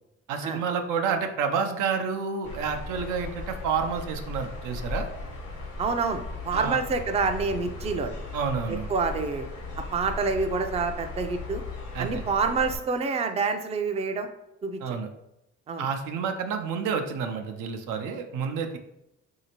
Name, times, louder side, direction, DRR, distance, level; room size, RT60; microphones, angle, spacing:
voice 1, 0.3-5.1 6.5-6.8 8.3-8.9 11.9-12.2 14.8-15.1 15.8-18.8, right 6 dB, 90° right, 6 dB, 0.5 m, -29 dB
sound 1, 2.4-12.8, left 3 dB, 80° left, 1.1 m, -37 dB
voice 2, 5.8-8.2 8.9-9.4 9.9-11.6 12.0-14.3 14.6-15.0 15.7-15.9, right 4 dB, 20° right, 6 dB, 0.3 m, -27 dB
3.2 x 2.7 x 2.9 m, 0.86 s
cardioid pair, 90°, 30 cm